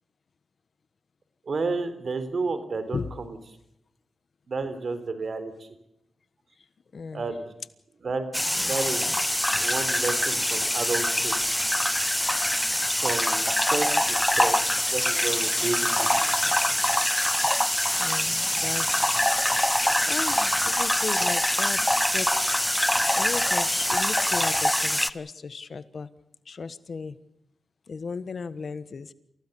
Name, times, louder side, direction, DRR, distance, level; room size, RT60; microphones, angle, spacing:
voice 1, 1.5-3.4 4.5-5.7 7.1-7.5 8.0-8.3 8.7-9.0 9.6-11.4 12.9-14.6 14.9-16.1, right 3 dB, 60° right, 11 dB, 3.7 m, -31 dB
voice 2, 6.9-7.3 8.5-9.1 18.0-22.9 23.1-26.1 26.4-27.2 27.9-29.1, left 5 dB, 60° left, 14 dB, 1.3 m, -36 dB
sound 1, 8.3-25.1, left 1 dB, 5° left, 0.9 m, -24 dB
28.0 x 16.0 x 7.0 m, 0.79 s
cardioid pair, 70°, 0 cm